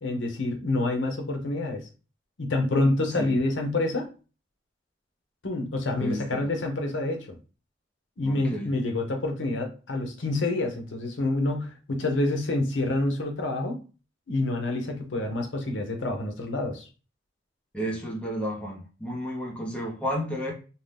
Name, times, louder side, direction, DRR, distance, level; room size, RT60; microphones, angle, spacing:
voice 1, 0.0-1.8 2.4-4.1 5.4-7.4 8.2-13.8 14.3-16.9, left 2 dB, 90° left, 3 dB, 0.7 m, -27 dB
voice 2, 6.0-6.4 8.2-8.7 17.7-20.5, equal, 5° left, -2 dB, 0.8 m, -32 dB
2.7 x 2.2 x 3.3 m, 0.34 s
head